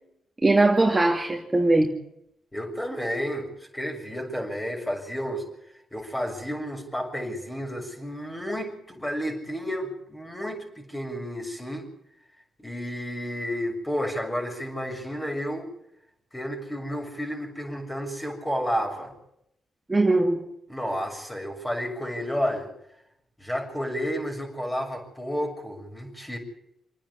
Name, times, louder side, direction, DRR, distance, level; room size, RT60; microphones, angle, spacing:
voice 1, 0.4-1.9 19.9-20.4, right 2 dB, 20° right, 0 dB, 2.6 m, -20 dB
voice 2, 2.5-5.4 5.9-11.9 12.6-15.7 16.3-19.1 20.7-22.7 23.4-26.4, equal, 15° left, 1 dB, 6.8 m, -31 dB
27.0 x 9.9 x 9.9 m, 0.79 s
cardioid pair, 65°, 0 cm